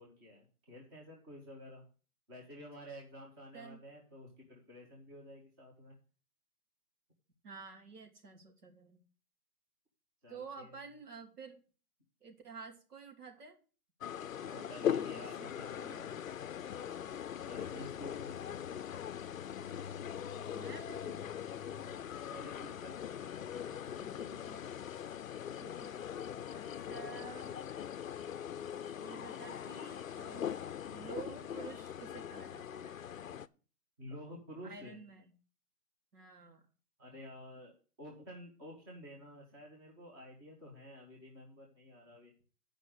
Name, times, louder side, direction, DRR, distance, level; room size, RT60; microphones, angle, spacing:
voice 1, 0.0-1.8 2.3-6.0 10.2-10.8 14.4-16.1 17.5-18.7 22.0-24.1 34.0-35.0 37.0-37.7 38.0-42.3, equal, 15° right, -1 dB, 1.3 m, -51 dB
voice 2, 7.4-9.0 10.3-11.6 12.2-13.6 14.6-16.3 17.7-17.8 20.5-21.3 23.9-24.6 25.6-26.0 26.5-27.6 29.0-30.6 30.9-32.9 34.6-35.3 36.1-36.6, right 5 dB, 80° right, 3 dB, 2.9 m, -51 dB
sound 1, 14.0-33.5, left 9 dB, 60° left, 0.5 m, -41 dB
8.8 x 5.2 x 7.9 m, 0.37 s
hypercardioid pair, 170°, 46 cm